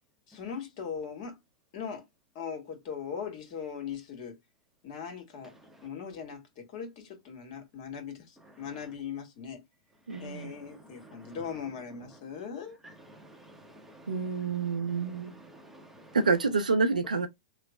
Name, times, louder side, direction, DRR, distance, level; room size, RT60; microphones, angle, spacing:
voice 1, 0.3-1.4 1.7-2.1 2.3-4.4 4.8-5.5 5.8-9.6 10.2-12.8, left 7 dB, 50° left, 1.5 m, -39 dB
voice 2, 10.1-10.5 14.1-15.4 16.1-17.3, right 4 dB, 85° right, 0.6 m, -28 dB
voice 3, 13.1-14.1 14.4-16.2, right 1 dB, 5° right, 0.8 m, -52 dB
3.1 x 2.1 x 3.6 m
hypercardioid pair, 110°, 4 cm